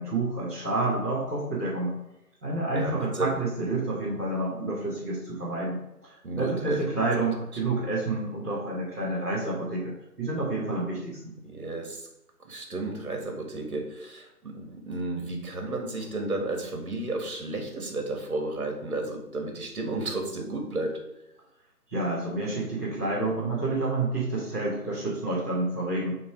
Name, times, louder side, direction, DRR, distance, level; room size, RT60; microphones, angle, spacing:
voice 1, 0.0-1.9 2.4-11.3 21.9-26.2, right 2 dB, 10° right, -13 dB, 1.0 m, -29 dB
voice 2, 2.7-3.4 6.2-6.8 7.2-7.3 11.4-12.1 12.4-21.0, right 2 dB, 65° right, 4 dB, 1.6 m, -33 dB
6.5 x 3.0 x 4.9 m, 0.87 s
figure-of-eight pair, 165°, 48 cm